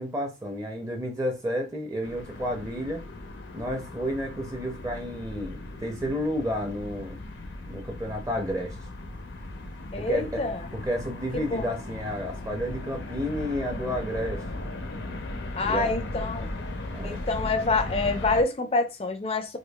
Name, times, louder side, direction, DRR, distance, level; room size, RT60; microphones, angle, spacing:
voice 1, 0.0-3.0 3.5-7.2 7.7-8.8 10.0-10.4 10.7-14.4 15.6-15.9 16.9-17.2, equal, 20° right, 0.6 m, -31 dB
sound 1, 2.0-18.4, left 2 dB, 85° left, 0.7 m, -37 dB
voice 2, 9.9-10.7 11.3-11.7 15.6-16.5 17.0-19.6, left 3 dB, 30° left, 0.4 m, -27 dB
4.9 x 2.3 x 2.3 m
head